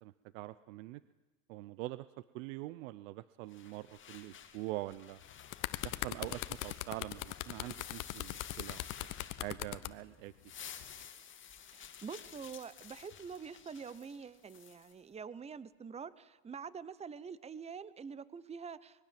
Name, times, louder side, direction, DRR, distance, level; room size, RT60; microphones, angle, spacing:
voice 1, 0.0-1.0 1.5-5.2 5.8-10.3, right 17 dB, 70° right, 16 dB, 0.8 m, -44 dB
sound 1, 3.5-9.9 10.2-14.9, left 8 dB, 30° left, 2.3 m, -52 dB
sound 2, 5.2-9.9 10.8-11.0, left 18 dB, 50° left, 1.1 m, -39 dB
voice 2, 11.7-19.1, right 6 dB, 15° right, 18 dB, 0.9 m, -46 dB
24.5 x 21.0 x 7.6 m, 1.2 s
supercardioid pair, 110°, 40 cm